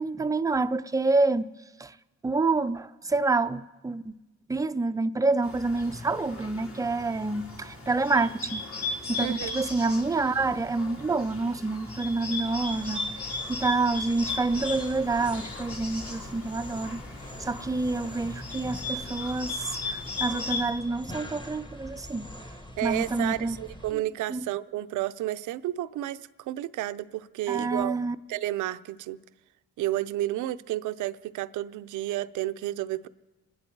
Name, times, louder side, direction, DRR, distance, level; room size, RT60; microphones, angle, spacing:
voice 1, 0.0-1.5 1.8-1.9 2.2-4.1 4.5-17.0 17.4-22.3 22.8-23.6 23.9-24.0 24.3-24.5 27.5-28.2, right 3 dB, 10° right, 0.5 m, -28 dB
Bird, 5.4-20.6, left 3 dB, 50° left, 3.2 m, -37 dB
voice 2, 9.2-9.6 22.8-26.2 26.5-28.0 28.3-29.2 29.8-33.1, right 15 dB, 80° right, 0.6 m, -31 dB
sound 1, 12.5-23.9, equal, 15° left, 1.3 m, -43 dB
27.5 x 10.5 x 4.6 m
cardioid pair, 90°, 30 cm